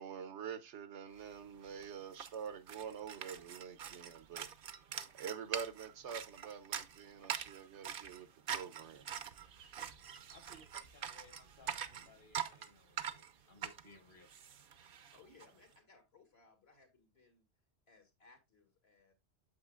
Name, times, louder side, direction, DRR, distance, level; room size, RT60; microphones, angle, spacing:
voice 1, 0.0-4.5 5.1-8.3 8.5-9.1, right 7 dB, 75° right, 1.1 m, -46 dB
sound 1, 1.3-1.4 1.6-15.5, right 8 dB, 55° right, 0.8 m, -44 dB
voice 2, 10.3-14.3, left 2 dB, 45° left, 1.6 m, -62 dB
voice 3, 15.1-17.4 17.9-19.1, left 4 dB, 60° left, 2.3 m, -64 dB
8.8 x 7.0 x 2.4 m
omnidirectional pair, 1.2 m